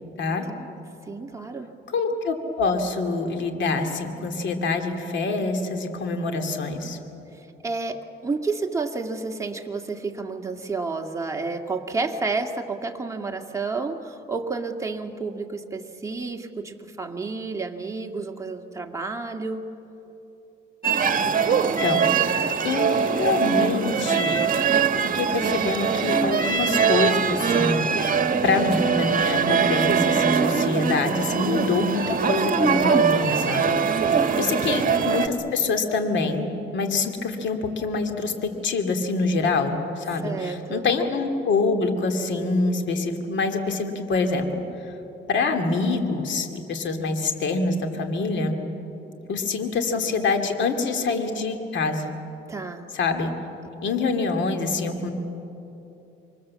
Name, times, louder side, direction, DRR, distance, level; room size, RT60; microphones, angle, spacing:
voice 1, 1.1-1.7 7.3-19.7 21.2-21.8 33.9-34.5 40.1-40.9 52.5-52.8, right 3 dB, 15° right, 2 dB, 2.0 m, -31 dB
voice 2, 1.9-7.0 21.5-22.3 22.6-24.4 25.0-28.2 28.4-44.6 45.3-48.6 49.3-52.2 52.9-53.3 53.8-55.1, left 3 dB, 70° left, 5 dB, 2.6 m, -26 dB
Paris Street Sound Recording (accordion sound), 20.8-35.3, right 6 dB, 45° right, 1.6 m, -22 dB
27.0 x 23.5 x 7.5 m, 3.0 s
cardioid pair, 90°, 20 cm